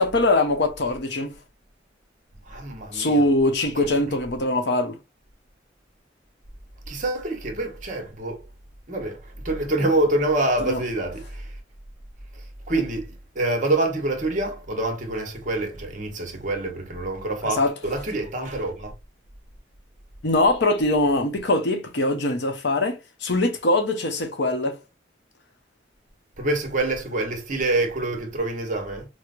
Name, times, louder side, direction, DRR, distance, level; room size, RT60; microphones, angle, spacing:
voice 1, 0.0-1.3 2.9-5.0 10.6-10.8 17.4-17.7 20.2-24.8, left 2 dB, 60° left, 0.7 m, -22 dB
voice 2, 2.4-3.3 6.9-8.4 8.9-11.5 12.3-18.9 26.4-29.0, right 2 dB, 45° right, 0.9 m, -26 dB
4.5 x 2.0 x 2.4 m
head